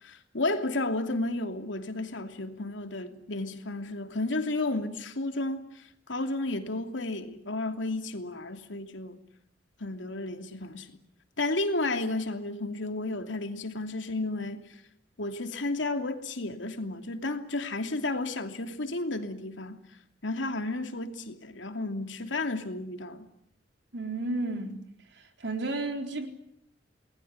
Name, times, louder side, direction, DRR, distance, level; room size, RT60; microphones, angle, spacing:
voice 1, 0.0-9.2 9.8-10.9 11.4-14.8 15.2-19.8 20.2-23.3, left 2 dB, 80° left, 2.8 m, -32 dB
voice 2, 23.9-24.8 25.1-26.3, right 2 dB, 65° right, 4.1 m, -32 dB
29.0 x 20.0 x 9.6 m
head